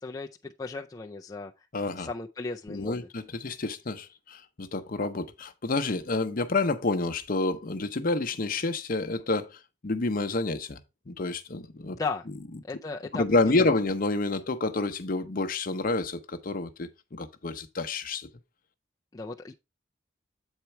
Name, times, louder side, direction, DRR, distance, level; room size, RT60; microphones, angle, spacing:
voice 1, 0.0-1.5 1.9-3.0 11.9-12.2 12.6-13.7 19.1-19.5, left 4 dB, 20° left, 0.4 m, -36 dB
voice 2, 1.7-2.1 2.7-10.8 11.1-12.0 13.1-18.3, left 3 dB, 45° left, 0.8 m, -29 dB
8.1 x 4.4 x 4.3 m
head